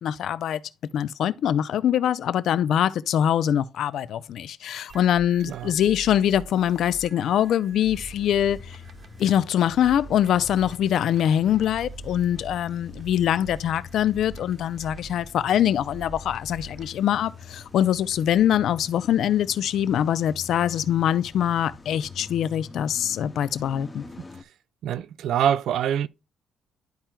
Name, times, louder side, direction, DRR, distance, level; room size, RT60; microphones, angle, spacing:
voice 1, 0.0-0.6 0.9-8.8 9.2-24.0, left 10 dB, 70° left, 0.4 m, -23 dB
sound 1, 4.9-18.4, right 4 dB, 55° right, 1.1 m, -45 dB
Car / Engine starting / Idling, 7.9-24.4, left 5 dB, 20° left, 0.7 m, -45 dB
voice 2, 24.8-26.1, right 9 dB, 75° right, 0.3 m, -24 dB
11.5 x 4.3 x 2.3 m
cardioid pair, 90°, 0 cm